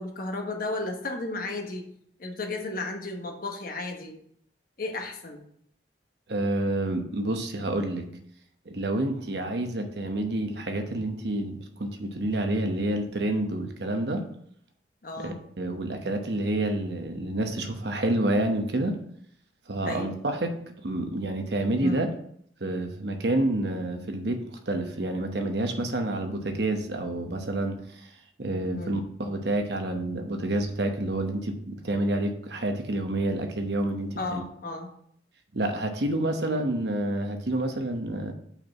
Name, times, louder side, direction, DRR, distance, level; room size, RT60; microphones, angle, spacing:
voice 1, 0.0-1.8 2.2-4.2 4.8-5.4 15.0-15.4 19.8-20.1 21.8-22.1 28.7-29.0 34.2-34.9, left 2 dB, 50° left, 3 dB, 1.2 m, -33 dB
voice 2, 6.3-8.1 8.7-14.2 15.2-19.0 19.7-20.6 20.8-22.1 22.6-28.1 28.4-34.4 35.5-38.3, right 1 dB, 65° right, 5 dB, 1.0 m, -28 dB
5.6 x 4.6 x 5.8 m, 0.66 s
head